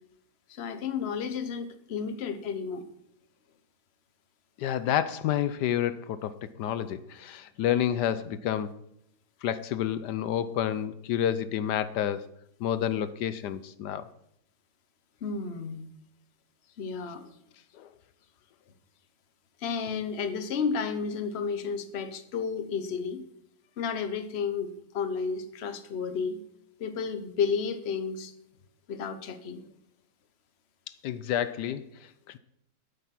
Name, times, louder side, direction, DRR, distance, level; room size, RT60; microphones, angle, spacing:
voice 1, 0.5-2.9 15.2-15.9 16.8-17.4 19.6-23.2 23.8-26.4 26.8-28.3 28.9-29.6, left 6 dB, 45° left, 10 dB, 1.1 m, -32 dB
voice 2, 4.6-8.7 9.4-12.3 12.6-14.1 17.7-17.9 31.0-32.4, left 10 dB, 80° left, 14 dB, 1.2 m, -29 dB
12.0 x 9.2 x 5.9 m, 0.76 s
omnidirectional pair, 1.8 m